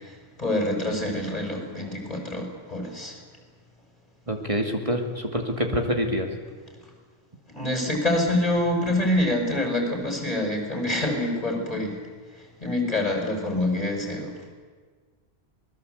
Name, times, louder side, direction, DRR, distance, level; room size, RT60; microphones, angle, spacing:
voice 1, 0.0-3.1 7.5-12.0 12.3-14.4, left 1 dB, 35° left, 2 dB, 6.2 m, -26 dB
voice 2, 4.3-6.3, equal, 30° right, 3 dB, 2.5 m, -26 dB
26.0 x 20.5 x 8.2 m, 1.5 s
omnidirectional pair, 1.1 m